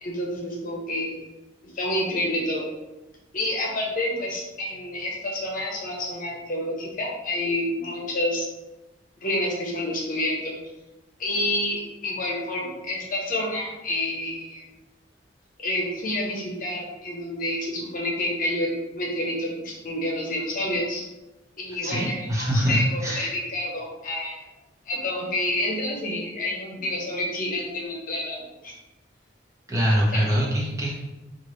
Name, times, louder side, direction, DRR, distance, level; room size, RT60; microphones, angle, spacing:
voice 1, 0.0-1.2 1.7-2.6 3.3-8.5 9.2-10.5 11.2-14.7 15.6-21.0 21.6-24.4 24.8-28.7 30.1-30.2, left 1 dB, 50° left, -2 dB, 0.9 m, -28 dB
voice 2, 21.8-23.3 29.7-30.9, equal, 15° right, -5 dB, 1.0 m, -24 dB
5.4 x 2.6 x 3.1 m, 1.0 s
head